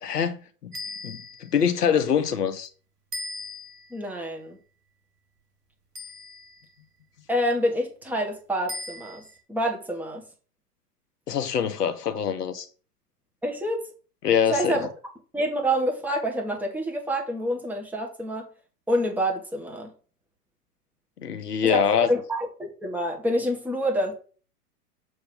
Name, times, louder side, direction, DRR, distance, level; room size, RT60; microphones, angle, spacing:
voice 1, 0.0-0.7 1.0-2.7 11.3-12.7 14.2-14.8 21.2-22.1, left 8 dB, 75° left, 1.1 m, -24 dB
sound 1, 0.7-1.6 3.1-4.0 6.0-6.7 8.7-9.4, left 2 dB, 70° right, 1.8 m, -38 dB
voice 2, 3.9-4.6 7.3-9.2 9.5-10.2 13.4-13.8 14.5-14.9 15.3-18.5 18.9-19.9 21.6-24.1, equal, 5° right, 1.6 m, -27 dB
7.1 x 3.2 x 5.5 m
figure-of-eight pair, 100°, 47 cm